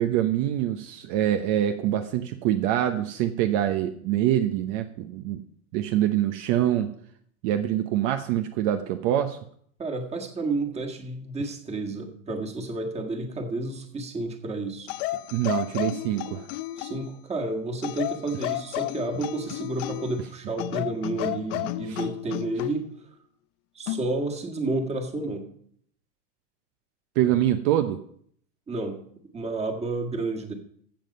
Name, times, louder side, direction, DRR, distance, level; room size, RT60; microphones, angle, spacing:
voice 1, 0.0-5.4 5.7-6.9 7.4-9.4 15.3-16.5 21.9-22.0 27.2-28.0, right 12 dB, 50° right, 8 dB, 0.9 m, -25 dB
voice 2, 9.8-14.9 16.8-22.8 23.7-25.5 28.7-29.0 29.3-30.5, right 2 dB, 15° right, 3 dB, 1.7 m, -31 dB
sound 1, 14.9-17.1 17.8-20.2 20.6-22.8 23.9-24.1, left 16 dB, 40° left, 0.5 m, -32 dB
14.5 x 7.4 x 5.3 m, 0.64 s
supercardioid pair, 145°, 46 cm